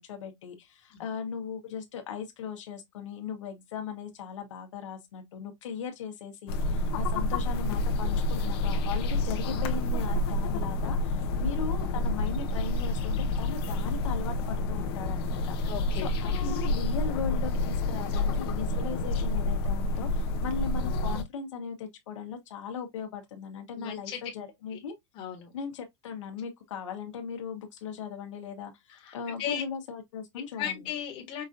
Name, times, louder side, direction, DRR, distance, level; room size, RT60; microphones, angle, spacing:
voice 1, 0.0-15.6 16.0-24.9 25.5-30.9, left 6 dB, 90° left, 1.2 m, -38 dB
sound 1, 6.5-21.2, left 2 dB, 55° left, 0.9 m, -28 dB
voice 2, 15.6-16.2 23.7-24.2 24.7-24.8 25.1-25.5 28.9-29.6 30.6-31.4, left 9 dB, 35° left, 1.4 m, -36 dB
5.2 x 2.6 x 2.6 m
supercardioid pair, 160°, 15 cm